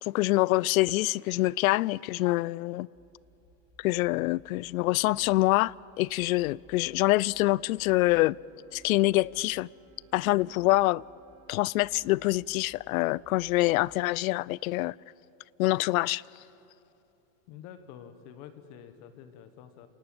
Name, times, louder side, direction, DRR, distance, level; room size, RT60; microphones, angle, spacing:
voice 1, 0.0-2.9 3.8-8.4 8.7-9.7 10.1-11.0 11.5-14.9 15.6-16.2, left 19 dB, 90° left, 0.5 m, -25 dB
sound 1, 2.9-14.0, right 1 dB, 10° left, 1.8 m, -61 dB
Wind instrument woodwind instrument, 6.7-11.6, right 5 dB, 10° right, 1.7 m, -61 dB
voice 2, 17.5-19.9, left 9 dB, 40° left, 1.4 m, -48 dB
29.0 x 18.5 x 7.8 m
supercardioid pair, 165°, 41 cm